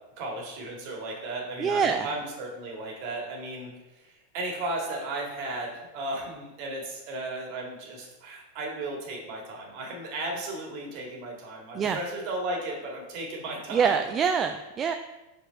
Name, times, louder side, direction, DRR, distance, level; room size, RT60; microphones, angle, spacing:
voice 1, 0.2-3.7 4.0-14.0, right 2 dB, 45° right, -1 dB, 1.9 m, -35 dB
voice 2, 1.6-2.1 11.7-12.0 13.7-14.9, right 6 dB, 25° right, 6 dB, 0.3 m, -25 dB
5.5 x 4.3 x 5.1 m, 1.0 s
figure-of-eight pair, 90°, 0 cm